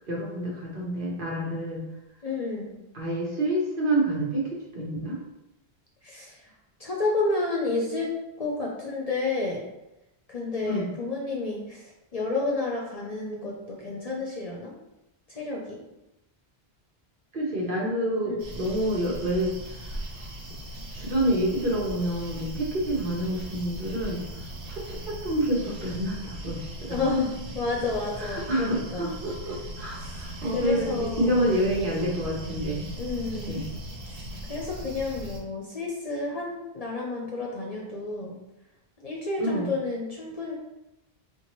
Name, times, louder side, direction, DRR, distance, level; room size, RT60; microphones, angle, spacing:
voice 1, 0.1-1.8 2.9-5.2 10.6-10.9 17.3-20.0 20.9-24.2 24.6-27.0 28.2-32.9 33.5-33.6 39.4-39.7, right 1 dB, 55° right, -3 dB, 1.0 m, -28 dB
voice 2, 2.2-2.7 6.0-6.5 6.8-8.1 8.4-9.6 10.3-14.7 15.3-15.8 18.2-18.4 26.9-29.2 30.0-31.8 32.9-33.6 34.1-34.2 34.5-38.4 39.0-40.5, left 3 dB, 45° left, -3 dB, 0.6 m, -30 dB
sound 1, 18.4-35.4, right 1 dB, 85° right, 1.0 m, -39 dB
4.2 x 2.2 x 3.0 m, 0.91 s
omnidirectional pair, 1.1 m